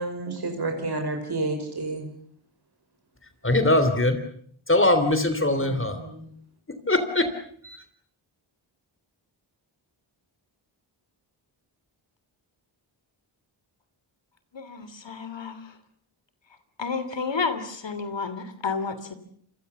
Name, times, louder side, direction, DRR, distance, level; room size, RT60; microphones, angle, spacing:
voice 1, 0.0-2.1 5.6-6.3, right 2 dB, 50° right, 4 dB, 5.6 m, -30 dB
voice 2, 3.4-4.2 4.7-6.0 6.9-7.2 7.6-7.8, left 1 dB, 25° left, 9 dB, 3.4 m, -21 dB
voice 3, 14.5-15.7 16.8-19.1, left 5 dB, 60° left, 12 dB, 3.1 m, -31 dB
27.5 x 23.0 x 6.9 m, 0.62 s
cardioid pair, 70°, 49 cm